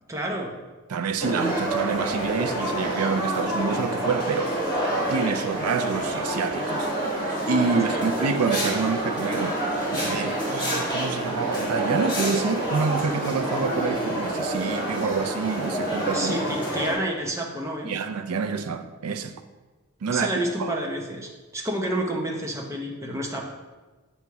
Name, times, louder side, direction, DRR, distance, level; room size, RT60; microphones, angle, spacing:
voice 1, 0.1-0.5 7.9-8.0 16.1-17.9 20.1-23.4, right 1 dB, 15° right, 0.7 m, -29 dB
voice 2, 0.9-4.5 5.1-16.4 17.8-19.3 20.0-20.3 20.6-20.7, right 5 dB, 85° right, 0.5 m, -28 dB
sound 1, 1.2-16.9, right 1 dB, 20° left, 1.6 m, -27 dB
8.1 x 3.0 x 4.6 m
head